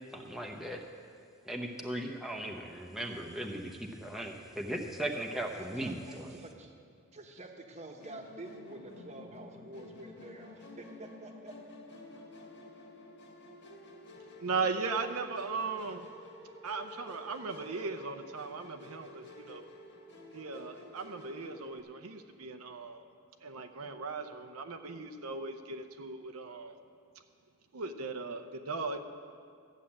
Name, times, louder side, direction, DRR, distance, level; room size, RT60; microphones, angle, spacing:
voice 1, 0.1-0.8 1.5-6.3, right 1 dB, ahead, 1 dB, 0.8 m, -38 dB
voice 2, 5.5-6.7 7.1-11.6, right 1 dB, 30° right, 3 dB, 1.2 m, -48 dB
Musical instrument, 8.0-21.8, left 1 dB, 50° left, 1.8 m, -51 dB
voice 3, 14.4-16.1 16.6-19.7 20.3-23.0 23.4-26.8 27.7-29.0, right 4 dB, 80° right, 7 dB, 0.7 m, -37 dB
13.5 x 7.4 x 8.7 m, 2.3 s
head